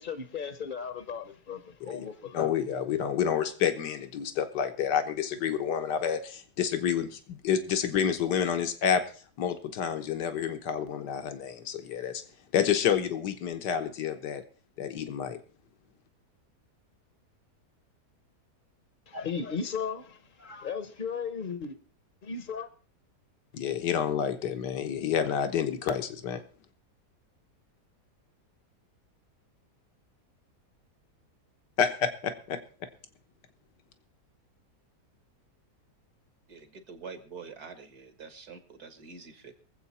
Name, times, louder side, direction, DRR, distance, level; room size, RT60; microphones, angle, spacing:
voice 1, 0.0-2.5 19.1-21.8 22.2-22.7, left 6 dB, 40° left, 0.8 m, -36 dB
voice 2, 2.3-9.0 9.4-12.2 12.5-14.4 14.8-15.4 23.5-26.4 31.8-32.6, left 8 dB, 85° left, 1.7 m, -29 dB
voice 3, 36.5-39.5, right 5 dB, 65° right, 2.1 m, -46 dB
23.5 x 7.9 x 4.2 m
omnidirectional pair, 1.8 m